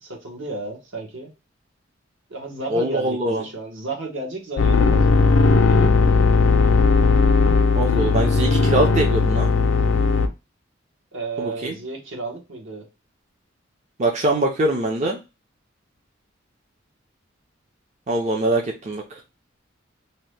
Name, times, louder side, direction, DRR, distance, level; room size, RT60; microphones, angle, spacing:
voice 1, 0.0-1.3 2.3-5.1 5.7-5.9 11.1-12.9, right 3 dB, 70° right, 0 dB, 1.0 m, -32 dB
voice 2, 2.7-3.4 7.8-9.5 11.4-11.8 14.0-15.2 18.1-19.0, right 1 dB, 35° right, 1 dB, 0.5 m, -23 dB
sound 1, 4.6-10.3, left 4 dB, 70° left, 0.5 m, -17 dB
2.7 x 2.1 x 3.2 m, 0.27 s
head